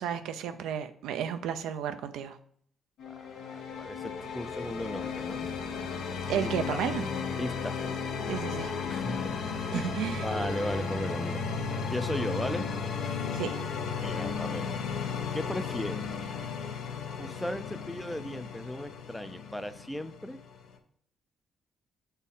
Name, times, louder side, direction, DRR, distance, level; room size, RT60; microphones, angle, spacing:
voice 1, 0.0-2.4 6.3-7.1 8.3-8.7 9.7-10.3 13.3-13.6, right 8 dB, 90° right, 9 dB, 0.5 m, -32 dB
sound 1, 3.0-20.8, left 5 dB, 80° left, 0.9 m, -34 dB
voice 2, 3.1-5.5 6.3-6.8 7.4-7.8 8.9-9.9 10.2-11.4 11.8-12.7 13.0-13.2 14.0-14.8 15.3-16.1 17.2-20.4, equal, 5° left, 12 dB, 0.4 m, -37 dB
7.1 x 4.1 x 3.7 m, 0.63 s
cardioid pair, 90°, 0 cm